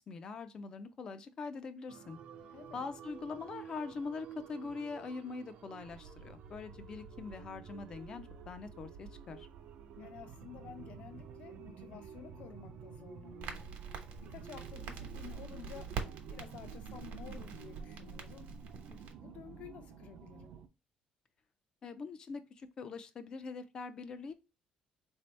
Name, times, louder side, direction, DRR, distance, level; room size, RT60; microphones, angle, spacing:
voice 1, 0.1-2.2 2.7-9.5 21.8-24.3, left 4 dB, 30° left, 0.4 m, -43 dB
sound 1, 1.9-20.7, right 7 dB, 55° right, 0.5 m, -51 dB
voice 2, 2.5-2.9 10.0-13.8 14.2-18.6 18.9-20.5, left 8 dB, 60° left, 0.8 m, -52 dB
Crackle, 13.4-19.1, right 5 dB, 75° right, 1.0 m, -44 dB
4.2 x 2.7 x 3.2 m
cardioid pair, 175°, 3 cm